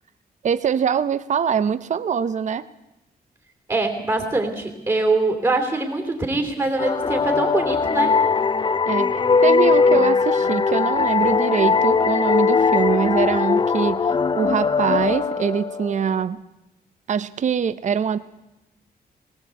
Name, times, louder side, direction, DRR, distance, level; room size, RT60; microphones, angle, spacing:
voice 1, 0.4-2.6 8.9-16.4 17.1-18.2, right 7 dB, 50° right, 14 dB, 0.7 m, -23 dB
voice 2, 3.7-8.2, right 2 dB, 20° right, 4 dB, 3.1 m, -23 dB
sound 1, 6.8-16.2, left 5 dB, 30° left, 0.7 m, -20 dB
20.5 x 19.5 x 8.3 m, 0.97 s
wide cardioid pair, 165°, 16 cm